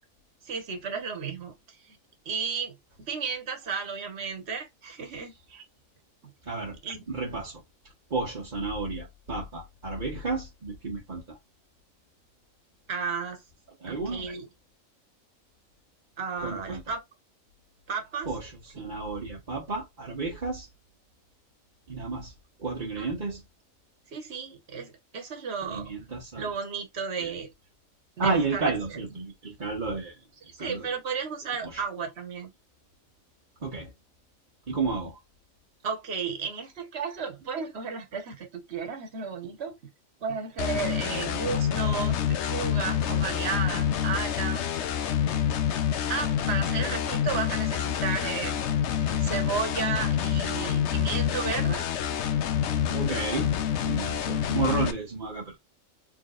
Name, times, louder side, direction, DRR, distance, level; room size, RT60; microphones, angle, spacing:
voice 1, 0.4-2.0 2.2-2.8 3.1-5.6 6.2-6.3 6.8-7.0 12.9-13.4 13.9-14.4 16.2-17.0 17.9-18.3 18.7-18.9 23.0-23.1 24.1-25.9 26.3-27.5 28.2-28.7 30.5-32.5 35.8-39.7 40.2-44.6 46.1-48.7 49.2-51.9, right 6 dB, 50° right, 1.5 m, -33 dB
voice 2, 6.4-6.8 7.1-7.6 8.1-11.4 13.8-14.3 16.4-16.8 18.3-20.7 21.9-22.3 22.6-23.4 25.7-26.5 27.2-27.3 28.2-30.2 30.4-30.9 31.6-31.8 33.6-33.9 34.7-35.2 46.6-46.9 52.9-53.5 53.8-55.6, right 3 dB, 35° right, 1.2 m, -32 dB
sound 1, 40.6-54.9, left 9 dB, 60° left, 0.9 m, -27 dB
4.5 x 3.5 x 2.5 m
omnidirectional pair, 1.4 m